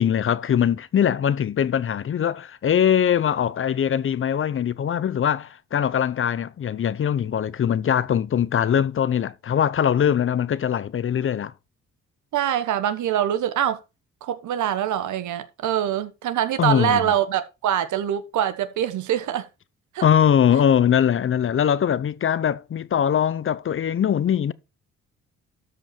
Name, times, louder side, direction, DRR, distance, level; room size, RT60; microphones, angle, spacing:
voice 1, 0.0-11.5 16.6-17.1 20.0-24.5, left 9 dB, 45° left, 0.7 m, -22 dB
voice 2, 12.3-13.8 14.2-19.5 19.9-20.0, right 10 dB, 75° right, 1.3 m, -24 dB
13.0 x 5.2 x 4.5 m
cardioid pair, 90°, 30 cm